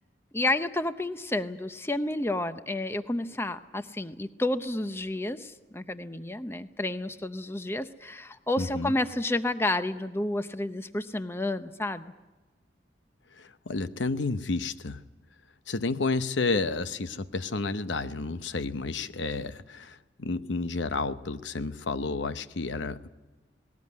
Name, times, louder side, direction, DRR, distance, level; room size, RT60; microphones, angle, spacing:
voice 1, 0.3-12.0, left 1 dB, 15° left, 10 dB, 0.7 m, -30 dB
voice 2, 8.6-8.9 13.4-15.1 15.7-23.1, left 3 dB, 80° left, 12 dB, 0.9 m, -31 dB
19.0 x 18.5 x 9.5 m, 1.2 s
head